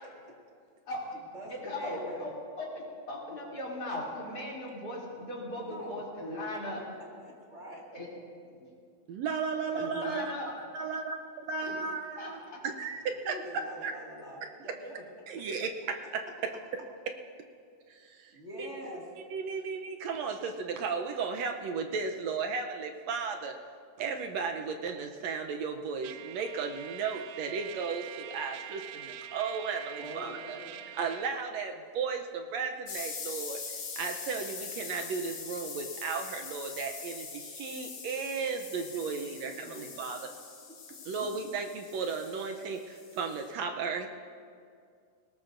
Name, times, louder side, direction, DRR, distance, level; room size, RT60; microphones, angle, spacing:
voice 1, 1.1-2.3 5.6-6.0 7.2-7.8 13.2-15.0 15.4-15.5 18.3-19.0 30.0-30.8 39.0-39.9 40.7-40.8 41.2-41.3, equal, 25° right, -3 dB, 1.9 m, -45 dB
voice 2, 1.6-6.8 7.9-8.1 8.6-8.7 9.7-10.5 11.6-11.7 12.2-12.6, left 1 dB, 30° left, -4 dB, 3.3 m, -38 dB
voice 3, 9.1-10.4 10.7-13.3 13.8-13.9 15.3-15.7 17.9-18.7 19.3-23.5 24.0-30.6 31.0-33.6 34.0-40.3 41.1-44.1, right 5 dB, 75° right, 5 dB, 1.7 m, -35 dB
Trumpet, 26.0-31.4, right 12 dB, 90° right, 2.1 m, -45 dB
sound 1, 32.9-43.5, left 5 dB, 60° left, 2.8 m, -43 dB
20.0 x 18.5 x 2.6 m, 2.2 s
omnidirectional pair, 3.5 m